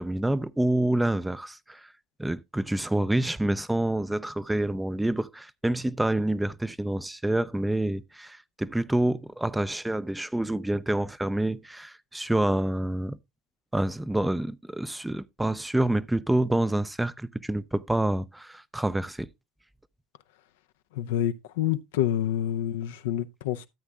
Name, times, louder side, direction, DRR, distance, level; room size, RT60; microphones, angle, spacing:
voice 1, 0.0-1.9 2.2-13.2 13.7-19.3, right 1 dB, 5° right, 0.4 m, -27 dB
voice 2, 20.9-23.7, left 11 dB, 80° left, 0.5 m, -28 dB
13.5 x 8.1 x 2.3 m
hypercardioid pair, 75°, 0 cm